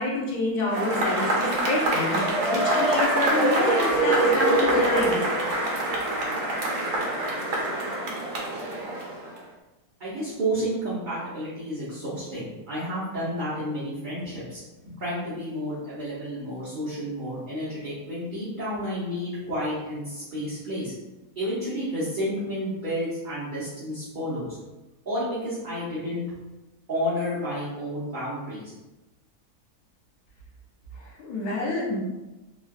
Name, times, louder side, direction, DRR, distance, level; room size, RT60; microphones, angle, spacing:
voice 1, 0.0-5.2 31.0-32.0, left 2 dB, 80° left, -2 dB, 1.2 m, -28 dB
Cheering / Applause / Crowd, 0.7-9.4, right 1 dB, 75° right, 1.1 m, -24 dB
voice 2, 10.0-14.6 14.9-20.9 21.3-24.6 25.1-26.2 26.9-28.7, equal, 40° right, -11 dB, 0.7 m, -31 dB
3.4 x 2.2 x 2.2 m, 1.1 s
omnidirectional pair, 1.7 m